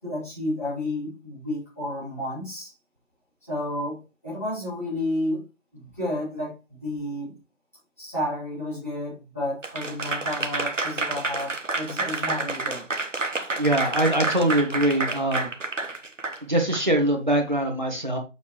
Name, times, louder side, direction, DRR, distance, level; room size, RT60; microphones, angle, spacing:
voice 1, 0.0-2.7 3.5-5.4 5.7-7.3 8.0-12.9, left 1 dB, 10° left, -12 dB, 3.3 m, -31 dB
Applause / Crowd, 9.6-16.8, right 3 dB, 70° right, 1.0 m, -29 dB
voice 2, 13.6-15.5 16.5-18.2, right 1 dB, 35° right, 2 dB, 1.6 m, -23 dB
7.0 x 6.3 x 3.1 m, 0.29 s
figure-of-eight pair, 170°, 39 cm